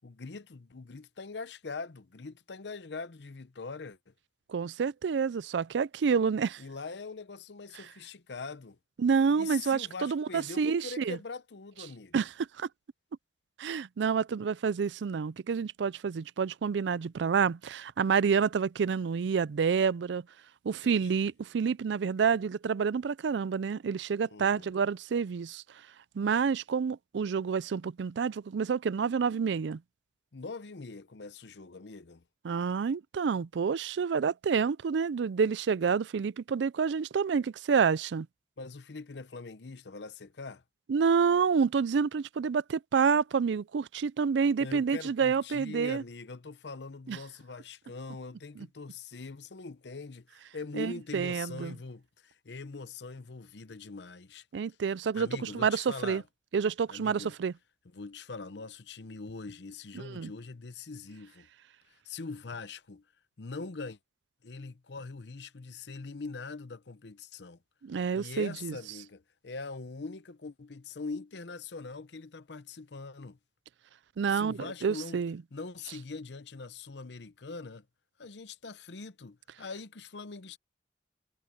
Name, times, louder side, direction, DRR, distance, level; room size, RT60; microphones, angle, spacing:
voice 1, 0.0-4.1 6.6-8.8 9.4-12.1 20.8-21.3 24.3-24.7 30.3-32.2 38.6-40.6 44.6-54.5 55.1-56.2 56.9-57.4 57.9-61.5 61.9-63.0 63.4-64.0 64.4-67.6 68.1-73.4 74.3-75.2 75.5-77.9 78.2-80.6, left 4 dB, 75° left, 0.8 m, -42 dB
voice 2, 4.5-6.6 9.0-11.2 12.1-12.3 12.6-12.7 13.6-20.2 20.6-25.6 26.2-29.8 32.4-38.3 40.9-46.0 47.1-47.2 48.6-48.7 50.8-51.7 54.5-56.2 56.5-57.5 59.9-60.3 67.8-68.7 74.2-75.4, right 6 dB, 80° right, 0.4 m, -28 dB
head